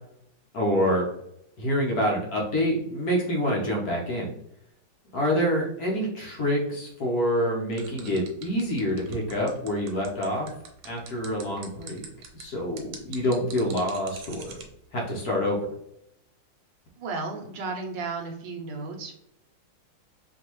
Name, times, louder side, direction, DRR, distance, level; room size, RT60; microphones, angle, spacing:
voice 1, 0.5-1.1 1.6-4.3 5.1-10.5 10.8-12.0 12.3-14.5 14.9-15.6, equal, 55° left, -2 dB, 1.3 m, -26 dB
sound 1, 7.7-14.6, right 6 dB, 85° right, 1.7 m, -43 dB
voice 2, 17.0-19.1, right 4 dB, 70° right, 2 dB, 1.4 m, -34 dB
4.6 x 2.9 x 3.0 m, 0.77 s
omnidirectional pair, 2.2 m